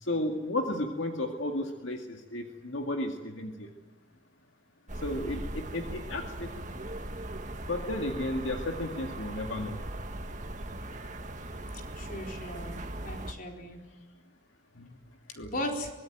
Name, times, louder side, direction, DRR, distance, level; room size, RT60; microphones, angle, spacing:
voice 1, 0.0-3.7 5.0-6.5 7.7-9.8 14.8-14.9 15.4-15.5, left 1 dB, 75° left, 3 dB, 2.0 m, -33 dB
sound 1, 4.9-13.3, right 1 dB, 40° right, 1.8 m, -39 dB
voice 2, 12.0-13.8 15.5-15.9, left 1 dB, 45° left, 2 dB, 4.3 m, -37 dB
24.0 x 20.5 x 9.1 m, 1.3 s
head